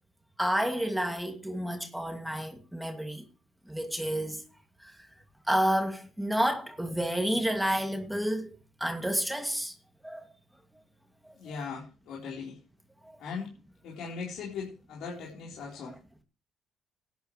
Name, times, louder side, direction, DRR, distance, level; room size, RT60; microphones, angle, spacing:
voice 1, 0.4-3.2 3.7-4.4 4.8-4.9 5.5-8.5 8.8-9.7 10.0-10.3, equal, 5° right, 2.5 m, -30 dB
voice 2, 11.4-12.6 13.2-13.5 13.8-15.9, left 5 dB, 75° left, 4.2 m, -39 dB
17.0 x 10.5 x 3.3 m
cardioid pair, 80°, 0 cm